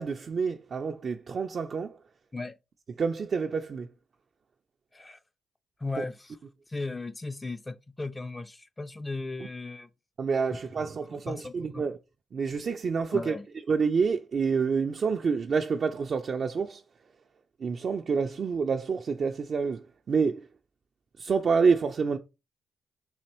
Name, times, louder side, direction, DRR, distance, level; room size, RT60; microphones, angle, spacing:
voice 1, 0.0-1.9 3.0-3.9 6.0-6.1 10.2-11.9 12.3-13.3 13.7-16.8 17.6-20.5 21.2-22.2, right 5 dB, 55° right, 0.3 m, -28 dB
voice 2, 5.8-6.4 6.7-9.9 10.5-10.8 11.1-11.9 13.1-13.5, left 3 dB, 20° left, 0.4 m, -37 dB
4.1 x 2.9 x 2.9 m
supercardioid pair, 60°, 0 cm